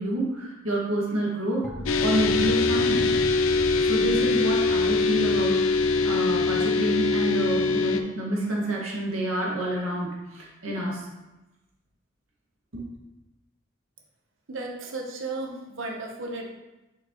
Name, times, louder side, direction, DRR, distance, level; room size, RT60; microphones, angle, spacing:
voice 1, 0.0-1.7 2.0-3.1 3.8-11.0 12.7-12.9, right 1 dB, 85° right, -4 dB, 2.0 m, -28 dB
sound 1, 1.6-7.3, equal, 5° left, 0.6 m, -39 dB
sound 2, 1.9-8.0, left 3 dB, 75° left, 0.5 m, -23 dB
voice 2, 14.5-16.5, right 2 dB, 65° right, 2 dB, 0.9 m, -34 dB
6.2 x 6.0 x 3.0 m, 1.0 s
head